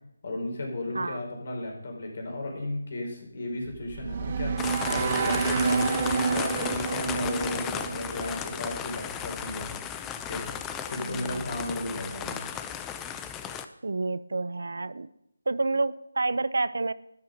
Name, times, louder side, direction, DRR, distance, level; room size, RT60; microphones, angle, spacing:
voice 1, 0.2-9.7 10.2-10.5 10.8-12.4, left 2 dB, 55° left, 2 dB, 5.0 m, -34 dB
sound 1, 3.6-8.9, right 5 dB, 35° right, 0.7 m, -29 dB
sound 2, 4.6-13.6, left 8 dB, 10° left, 0.6 m, -35 dB
voice 2, 11.0-11.4 13.8-15.1 15.5-16.9, right 3 dB, 75° right, 17 dB, 0.6 m, -29 dB
12.5 x 11.5 x 5.3 m, 0.78 s
figure-of-eight pair, 160°, 0 cm